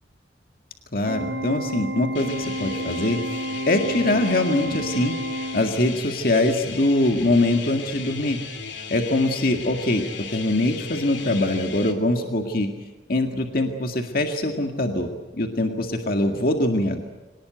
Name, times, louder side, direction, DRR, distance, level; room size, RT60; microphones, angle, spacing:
voice 1, 0.9-3.2 3.7-5.2 5.5-8.4 8.9-10.0 10.3-12.7 13.1-17.0, left 1 dB, 55° left, 4 dB, 2.0 m, -23 dB
Organ, 1.1-6.1, equal, 65° right, 1.0 m, -31 dB
sound 1, 2.1-11.9, left 5 dB, 85° left, 2.8 m, -37 dB
25.0 x 19.0 x 9.2 m, 1.1 s
head